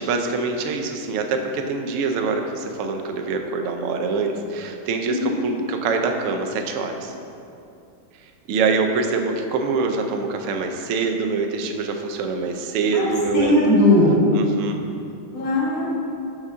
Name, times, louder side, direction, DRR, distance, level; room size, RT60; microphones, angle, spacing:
voice 1, 0.0-7.1 8.5-13.6 14.3-14.8, right 4 dB, 85° right, 4 dB, 0.6 m, -24 dB
voice 2, 5.1-5.4 12.9-13.1 13.3-14.2 15.3-15.8, left 1 dB, 85° left, -6 dB, 1.7 m, -18 dB
5.1 x 3.6 x 5.5 m, 2.6 s
omnidirectional pair, 1.9 m